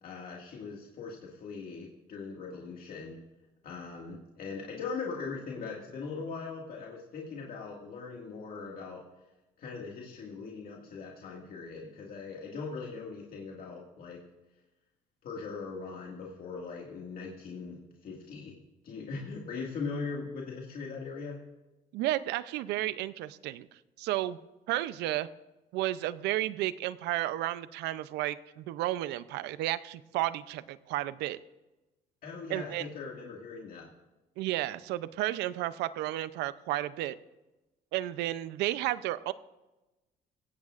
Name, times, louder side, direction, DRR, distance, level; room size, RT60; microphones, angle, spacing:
voice 1, 0.0-3.2 3.6-9.0 9.6-14.2 15.2-18.6 18.8-21.4 32.2-33.9, left 4 dB, 60° left, -2 dB, 2.0 m, -40 dB
voice 2, 21.9-23.7 24.0-24.4 24.7-25.3 25.7-31.4 32.5-32.9 34.4-37.2 37.9-39.3, right 15 dB, 90° right, 15 dB, 0.6 m, -32 dB
17.0 x 16.0 x 2.5 m, 1.1 s
cardioid pair, 110°, 17 cm